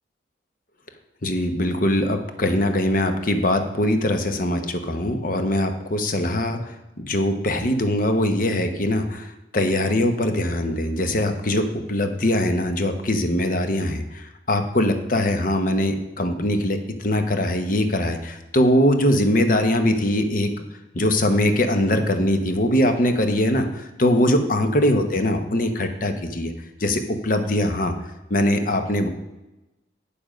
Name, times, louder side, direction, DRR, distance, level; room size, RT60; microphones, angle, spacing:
voice 1, 1.2-20.6 20.9-26.5 26.8-27.9 28.3-29.1, left 1 dB, 45° left, 7 dB, 0.9 m, -22 dB
8.7 x 6.9 x 5.1 m, 0.98 s
head